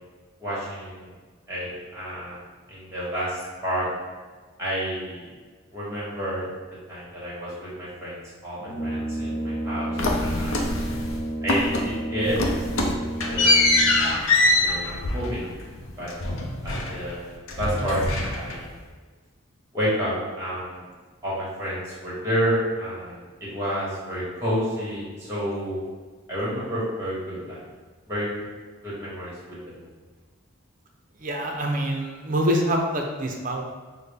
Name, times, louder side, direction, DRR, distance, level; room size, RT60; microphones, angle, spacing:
voice 1, 0.4-1.1 1.5-2.4 2.7-3.9 4.6-5.3 5.7-6.5 6.9-10.7 11.4-12.4 12.7-13.7 14.4-15.5 16.0-16.1 16.6-18.7 19.7-20.8 21.2-25.8 26.3-27.7 28.1-28.3 28.8-29.9, equal, 15° right, -8 dB, 1.5 m, -30 dB
Brass instrument, 8.6-14.4, right 1 dB, 40° left, 0.9 m, -31 dB
sound 1, 10.0-11.2 11.5-12.0 12.2-17.2 17.5-18.8, left 2 dB, 80° left, 0.6 m, -24 dB
voice 2, 31.2-33.6, equal, 40° right, 2 dB, 0.5 m, -25 dB
6.1 x 2.1 x 3.4 m, 1.4 s
head